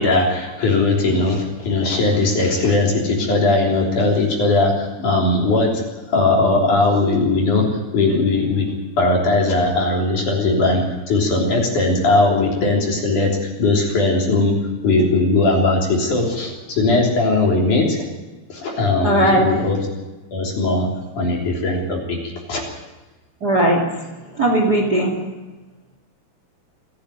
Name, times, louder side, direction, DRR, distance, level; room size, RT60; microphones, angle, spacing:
voice 1, 0.0-7.6 7.9-8.7 9.0-14.5 14.8-18.0 18.5-19.8 20.3-20.9 21.1-22.2 22.5-22.6, left 2 dB, 50° left, -1 dB, 4.7 m, -19 dB
voice 2, 19.0-19.5 23.4-25.2, right 1 dB, 30° right, 2 dB, 2.5 m, -18 dB
28.5 x 10.5 x 9.0 m, 1.2 s
omnidirectional pair, 4.9 m